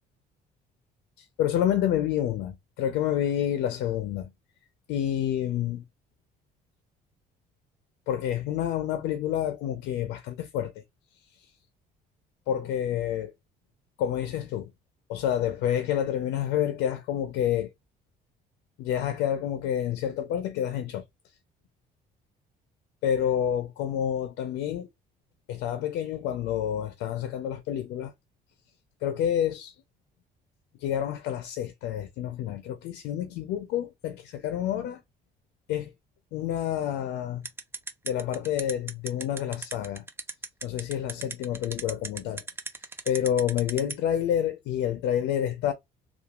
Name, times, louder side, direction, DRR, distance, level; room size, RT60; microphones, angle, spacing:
voice 1, 1.4-4.3 4.9-5.8 8.1-10.7 12.5-13.3 14.0-14.7 15.1-17.7 18.8-21.0 23.0-24.9 25.5-28.1 29.0-29.7 30.8-35.0 35.7-35.9 36.3-37.4 38.0-40.0 40.6-42.4 43.1-45.7, left 10 dB, 90° left, 0.5 m, -28 dB
sound 1, 37.4-43.9, right 3 dB, 15° right, 0.4 m, -35 dB
2.9 x 2.3 x 2.3 m
cardioid pair, 110°, 17 cm